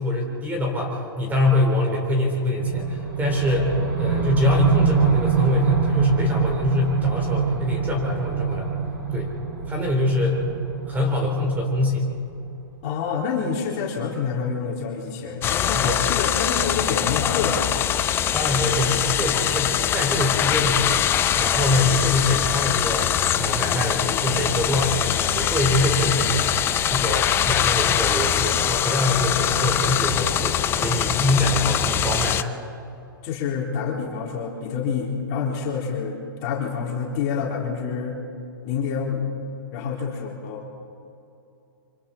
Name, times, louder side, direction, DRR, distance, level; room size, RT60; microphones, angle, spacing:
voice 1, 0.0-8.7 9.1-9.3 9.6-10.4 10.9-12.1 15.7-16.0 18.3-21.1 21.4-26.5 26.9-32.4, left 1 dB, 15° right, 0 dB, 4.1 m, -24 dB
sound 1, 2.6-12.7, right 6 dB, 70° right, 6.3 m, -25 dB
voice 2, 12.8-17.9 33.2-38.2 38.6-39.3 39.7-40.7, left 6 dB, 40° left, -2 dB, 3.5 m, -27 dB
sound 2, 15.4-32.4, left 10 dB, 20° left, 0.6 m, -23 dB
26.0 x 25.0 x 4.3 m, 2.7 s
hypercardioid pair, 140°, 12 cm